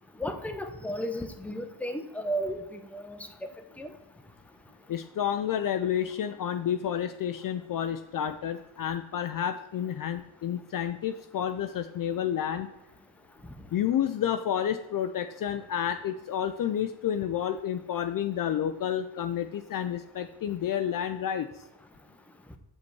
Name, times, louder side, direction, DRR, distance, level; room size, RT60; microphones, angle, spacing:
voice 1, 0.2-3.5 3.8-3.9, equal, 5° left, 6 dB, 0.7 m, -34 dB
voice 2, 4.9-12.7 13.7-21.5, left 9 dB, 50° left, 9 dB, 0.4 m, -30 dB
7.0 x 5.1 x 4.6 m, 0.93 s
cardioid pair, 95°, 45 cm